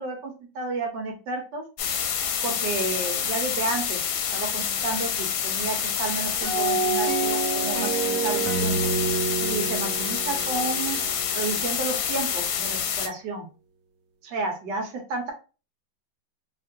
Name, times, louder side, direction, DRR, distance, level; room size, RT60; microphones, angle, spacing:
voice 1, 0.0-1.6 2.4-4.0 4.3-8.9 9.4-11.0 11.4-13.4 14.2-15.3, right 3 dB, 70° right, 2 dB, 1.5 m, -31 dB
sound 1, 1.8-13.1, left 7 dB, 90° left, 1.4 m, -27 dB
sound 2, 6.4-11.6, right 4 dB, 85° right, 0.7 m, -28 dB
3.3 x 2.9 x 2.6 m, 0.33 s
omnidirectional pair, 2.0 m